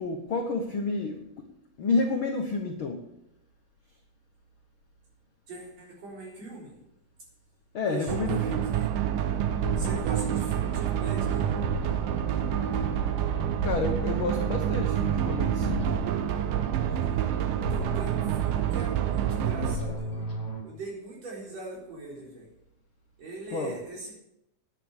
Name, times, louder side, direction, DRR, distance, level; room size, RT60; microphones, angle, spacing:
voice 1, 0.0-1.5 1.8-3.0 7.7-8.7 13.6-15.9 16.9-17.0 23.5-23.8, left 3 dB, 75° left, 4 dB, 1.1 m, -30 dB
voice 2, 5.5-6.8 7.8-8.9 9.8-11.6 17.5-20.3 20.6-22.5 23.2-24.1, right 2 dB, 45° right, -3 dB, 5.1 m, -41 dB
sound 1, 8.1-19.8, right 10 dB, 80° right, 2.4 m, -28 dB
sound 2, 9.6-20.6, left 1 dB, 30° left, 3.2 m, -37 dB
10.0 x 9.0 x 8.1 m, 0.83 s
omnidirectional pair, 4.1 m